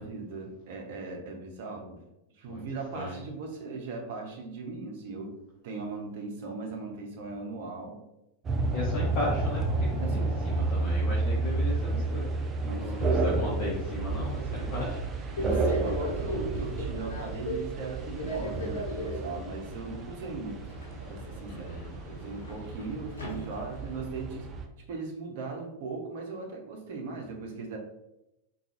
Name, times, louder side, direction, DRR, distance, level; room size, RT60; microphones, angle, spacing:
voice 1, 0.0-2.0 2.3-5.4 5.6-8.0 10.0-10.6 12.6-13.3 15.4-20.7 21.1-24.5 24.9-27.8, right 3 dB, 50° right, 2 dB, 0.7 m, -38 dB
sound 1, 8.4-24.7, right 3 dB, 25° right, 0.4 m, -31 dB
voice 2, 8.7-12.3 12.7-15.0 21.5-21.9, left 2 dB, 40° left, -5 dB, 0.8 m, -35 dB
Subway metro underground, 14.2-24.0, equal, 70° left, 0.8 m, -39 dB
3.8 x 2.3 x 2.9 m, 0.88 s
figure-of-eight pair, 90°, 0 cm